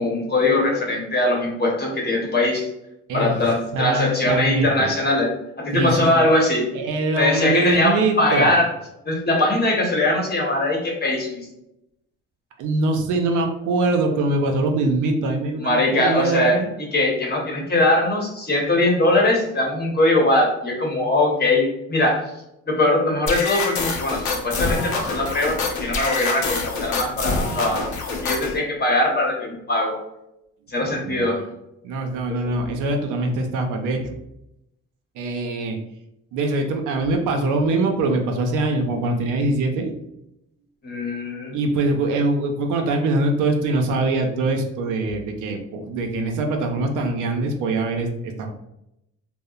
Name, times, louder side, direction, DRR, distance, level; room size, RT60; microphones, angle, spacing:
voice 1, 0.0-2.7 3.1-5.3 5.6-6.7 7.2-8.7 9.0-11.5 15.6-16.6 16.9-22.3 22.7-30.0 30.7-31.4 32.3-32.5 40.8-41.6, left 2 dB, 35° left, -1 dB, 0.9 m, -21 dB
voice 2, 3.1-3.5 3.7-4.9 5.7-6.2 6.7-8.5 12.6-16.7 30.8-31.4 31.8-34.2 35.2-35.8 36.3-39.9 41.5-48.5, right 2 dB, 85° right, 4 dB, 0.5 m, -23 dB
sound 1, 23.3-28.6, left 3 dB, 75° left, 0.6 m, -26 dB
2.8 x 2.0 x 2.4 m, 0.84 s
cardioid pair, 90°, 30 cm